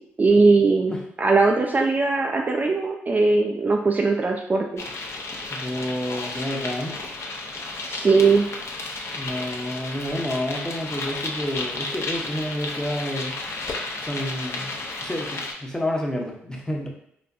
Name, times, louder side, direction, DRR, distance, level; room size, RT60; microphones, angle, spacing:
voice 1, 0.2-4.8 7.9-8.5, right 3 dB, 25° right, 1 dB, 0.4 m, -20 dB
sound 1, 4.8-15.5, left 3 dB, 45° left, 0.6 m, -33 dB
voice 2, 5.5-6.9 9.1-13.4 14.0-16.9, left 1 dB, 10° left, 0 dB, 0.8 m, -29 dB
4.0 x 2.2 x 2.5 m, 0.77 s
hypercardioid pair, 45°, 6 cm